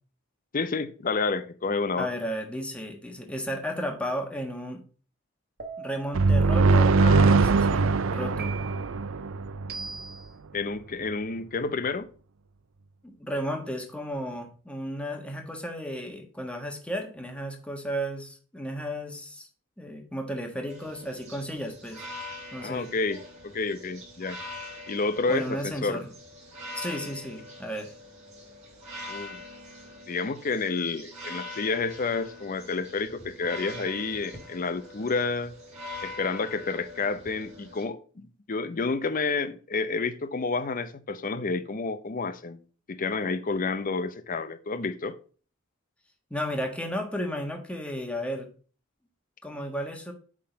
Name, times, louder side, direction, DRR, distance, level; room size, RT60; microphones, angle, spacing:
voice 1, 0.5-2.1 10.5-12.1 22.6-23.2 23.5-24.4 24.9-26.0 29.1-29.4 30.1-35.5 36.0-42.6 42.9-45.2, left 4 dB, 40° left, 0.6 m, -29 dB
voice 2, 2.0-4.8 5.8-8.5 13.0-19.5 19.8-22.0 22.5-22.9 25.3-26.1 26.7-27.9 46.3-48.5 49.4-50.1, equal, 5° left, 1.4 m, -34 dB
sound 1, 5.6-6.2 7.0-7.6 8.4-9.0 9.7-10.3, right 2 dB, 50° right, 1.3 m, -39 dB
sound 2, 6.1-9.9, right 3 dB, 80° right, 0.5 m, -21 dB
sound 3, 20.7-37.8, left 1 dB, 35° right, 3.9 m, -43 dB
8.7 x 3.8 x 5.0 m
head